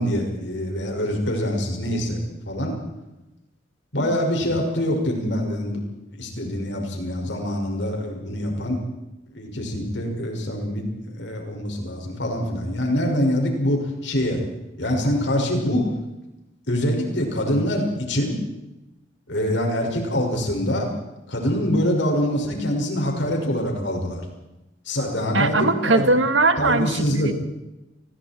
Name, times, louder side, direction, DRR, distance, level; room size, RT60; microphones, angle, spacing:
voice 1, 0.0-2.2 2.5-2.7 3.9-5.8 6.2-8.8 9.3-14.4 14.8-15.9 16.7-18.3 19.3-20.9 21.3-24.2 24.9-26.1 26.6-27.3, equal, 70° left, 2 dB, 6.1 m, -24 dB
voice 2, 25.3-27.3, right 2 dB, 80° right, 9 dB, 2.1 m, -20 dB
29.5 x 22.0 x 4.6 m, 0.95 s
head